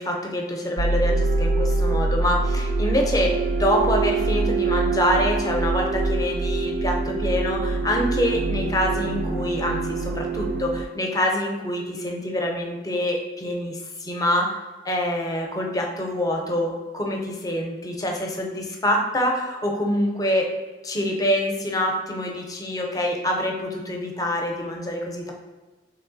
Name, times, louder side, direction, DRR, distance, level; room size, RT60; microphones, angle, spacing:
voice 1, 0.0-14.6 14.8-20.5 20.8-25.3, equal, 20° left, 1 dB, 0.5 m, -25 dB
sound 1, 0.8-10.8, right 3 dB, 50° right, 0.3 m, -24 dB
3.0 x 3.0 x 3.8 m, 1.3 s
head